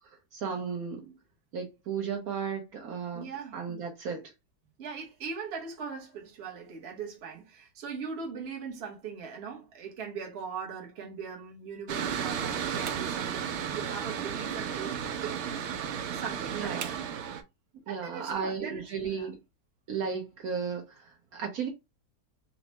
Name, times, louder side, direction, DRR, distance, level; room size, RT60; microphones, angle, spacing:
voice 1, 0.3-1.1 1.5-3.3 3.5-4.2 16.5-16.9 17.9-19.4 19.9-21.7, right 6 dB, 65° right, 1.2 m, -34 dB
voice 2, 3.1-3.8 4.8-15.8 16.1-17.0 17.9-19.3, right 6 dB, 45° right, 1.1 m, -40 dB
Mechanical fan, 11.9-17.4, right 8 dB, 85° right, 0.6 m, -33 dB
4.2 x 2.2 x 2.9 m
omnidirectional pair, 1.8 m